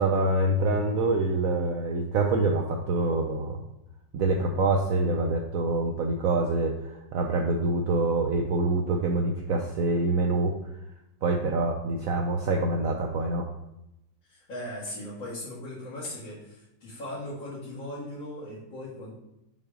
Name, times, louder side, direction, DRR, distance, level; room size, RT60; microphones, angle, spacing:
voice 1, 0.0-3.6 4.1-10.5 11.2-13.4, right 2 dB, 70° right, 2 dB, 0.8 m, -26 dB
voice 2, 14.2-19.1, left 1 dB, 85° left, -11 dB, 2.6 m, -38 dB
5.9 x 3.6 x 4.9 m, 0.88 s
omnidirectional pair, 2.0 m